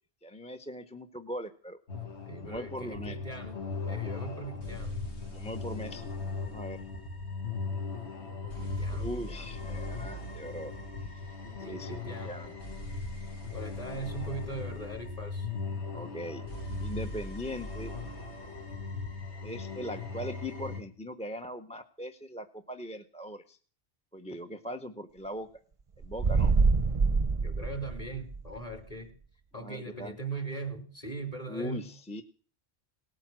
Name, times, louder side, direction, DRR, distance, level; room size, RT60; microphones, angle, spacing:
voice 1, 0.2-1.8 2.4-3.2 5.3-6.1 6.4-6.8 8.9-10.7 11.7-12.5 15.9-16.4 16.8-17.9 19.4-23.6 24.1-25.5 26.0-26.5 29.6-30.2 31.5-32.2, equal, 5° left, 6 dB, 0.7 m, -40 dB
sound 1, 1.9-20.8, left 3 dB, 80° left, 2.7 m, -38 dB
voice 2, 2.3-3.5 3.9-4.9 8.6-9.5 11.6-12.4 13.5-15.5 27.4-29.1 29.5-31.9, right 3 dB, 35° left, 2 dB, 3.4 m, -40 dB
sound 2, 26.0-28.5, right 4 dB, 35° right, 0.8 m, -25 dB
18.5 x 9.1 x 7.5 m, 0.42 s
omnidirectional pair, 1.1 m